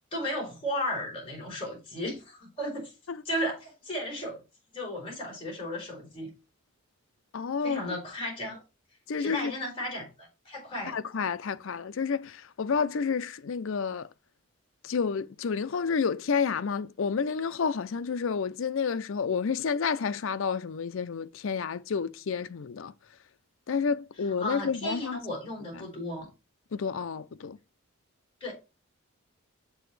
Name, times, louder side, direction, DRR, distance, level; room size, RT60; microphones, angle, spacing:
voice 1, 0.1-2.9 3.2-4.4 4.7-6.3 7.6-8.6 9.2-11.0 24.4-26.3 28.4-28.5, left 1 dB, 25° left, 4.9 m, -34 dB
voice 2, 7.3-7.8 9.1-9.5 10.9-14.1 14.8-22.9 23.7-25.2 26.7-27.6, left 5 dB, 60° left, 0.4 m, -30 dB
7.8 x 7.0 x 3.2 m
head